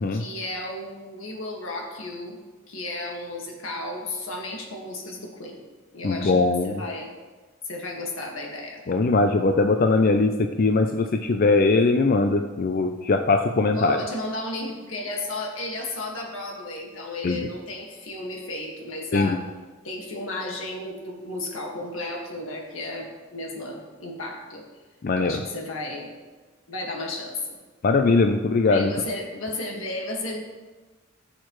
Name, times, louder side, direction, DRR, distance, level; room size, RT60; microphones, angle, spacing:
voice 1, 0.1-2.4 2.7-5.6 5.9-7.1 7.6-8.8 13.7-19.4 19.8-24.6 25.1-26.1 26.7-27.6 28.7-30.5, left 2 dB, 85° left, 0 dB, 1.8 m, -33 dB
voice 2, 6.0-6.8 8.9-14.0 17.2-17.5 19.1-19.4 25.0-25.4 27.8-28.9, left 3 dB, 45° left, 6 dB, 0.4 m, -21 dB
15.0 x 6.6 x 3.1 m, 1.3 s
head